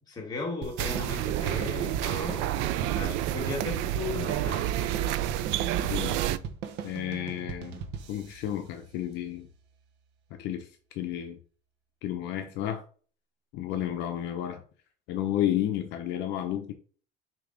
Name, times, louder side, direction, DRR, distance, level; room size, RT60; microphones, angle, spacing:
voice 1, 0.1-2.5 2.9-4.7, left 3 dB, 20° left, 1.8 m, -36 dB
sound 1, 0.6-9.4, right 6 dB, 60° right, 0.9 m, -40 dB
sound 2, 0.8-6.4, right 12 dB, 80° right, 0.4 m, -29 dB
Bowed string instrument, 1.1-5.8, right 12 dB, 30° right, 0.9 m, -44 dB
voice 2, 5.8-6.2 6.8-7.8 8.1-9.5 10.4-10.7 10.9-11.4 12.0-12.8 13.5-14.6 15.1-16.7, left 11 dB, 60° left, 0.7 m, -31 dB
6.9 x 2.9 x 5.0 m
cardioid pair, 175°, 19 cm